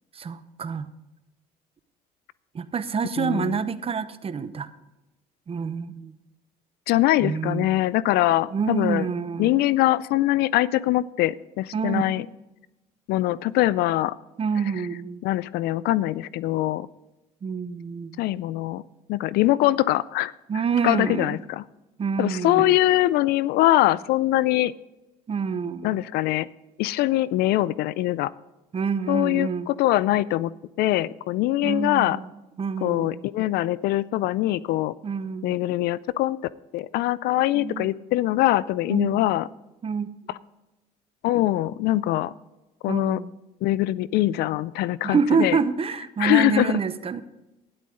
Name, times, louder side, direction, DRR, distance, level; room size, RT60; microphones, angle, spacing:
voice 1, 0.1-0.9 2.5-4.7 5.5-6.2 7.2-7.7 8.5-9.5 11.7-12.0 14.4-15.2 17.4-18.2 20.5-21.4 22.0-22.8 25.3-26.0 28.7-29.7 31.6-32.3 32.6-33.2 35.0-35.6 37.5-37.9 38.9-39.2 39.8-40.1 42.9-43.3 45.0-47.2, right 6 dB, 35° right, 13 dB, 0.8 m, -27 dB
voice 2, 3.2-3.6 6.9-9.1 9.4-12.3 13.1-14.2 15.2-16.9 18.2-18.8 19.1-20.3 20.8-21.6 22.2-24.7 25.8-26.5 26.8-28.3 29.1-32.2 32.8-35.0 35.4-36.4 36.7-39.5 40.3-40.4 41.2-42.3 42.8-43.2 43.6-45.6 46.2-46.8, left 15 dB, 70° left, 20 dB, 0.4 m, -23 dB
12.5 x 10.5 x 3.8 m, 1.0 s
supercardioid pair, 80°, 17 cm